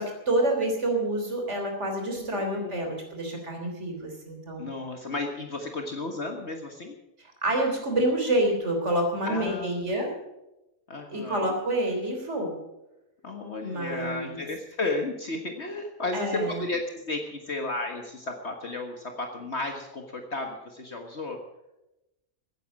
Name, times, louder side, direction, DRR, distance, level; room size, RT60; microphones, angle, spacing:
voice 1, 0.0-4.7 7.4-10.1 11.1-12.6 13.6-14.4 16.1-16.6, right 1 dB, 55° right, 2 dB, 3.9 m, -28 dB
voice 2, 2.1-2.9 4.6-6.9 9.2-9.9 10.9-11.5 13.2-21.4, left 2 dB, 50° left, 3 dB, 1.8 m, -33 dB
15.5 x 10.0 x 7.5 m, 0.94 s
omnidirectional pair, 1.5 m